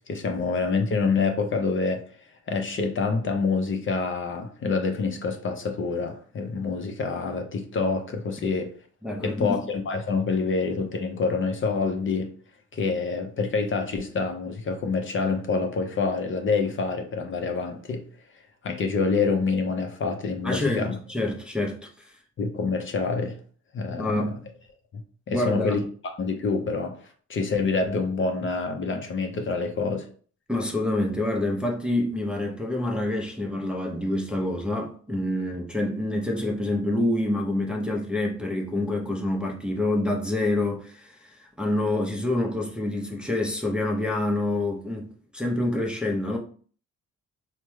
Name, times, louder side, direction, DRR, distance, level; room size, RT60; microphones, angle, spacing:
voice 1, 0.1-2.0 2.5-8.7 9.2-12.3 12.7-18.0 18.6-21.0 22.4-23.4 23.7-24.2 24.9-25.0 25.3-25.8 26.2-27.0 27.3-30.1, left 4 dB, 40° left, 0.6 m, -26 dB
voice 2, 9.0-9.6 20.4-21.9 24.0-24.4 25.3-25.8 30.5-46.4, left 1 dB, 5° right, 0.5 m, -27 dB
3.3 x 2.1 x 3.1 m
cardioid pair, 90°, 30 cm